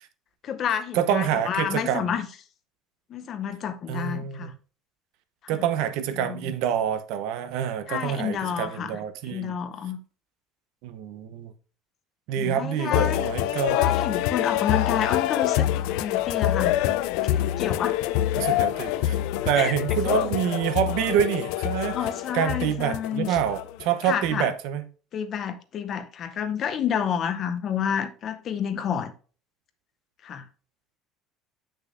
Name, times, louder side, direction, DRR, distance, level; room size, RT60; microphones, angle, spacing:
voice 1, 0.4-2.3 3.1-4.5 6.2-6.4 7.9-9.0 9.3-10.0 12.4-13.2 13.7-16.8 17.2-18.0 19.6-20.2 21.9-23.4 24.0-24.5 25.1-29.1 30.2-30.4, left 8 dB, 35° left, 0.7 m, -29 dB
voice 2, 0.9-2.1 3.9-4.5 5.5-9.6 10.8-11.5 12.3-13.9 18.4-19.2 19.4-22.0 22.3-24.9, right 9 dB, 65° right, 0.9 m, -27 dB
sound 1, 12.9-24.3, left 13 dB, 75° left, 0.4 m, -26 dB
8.1 x 6.4 x 2.6 m
cardioid pair, 170°, 0 cm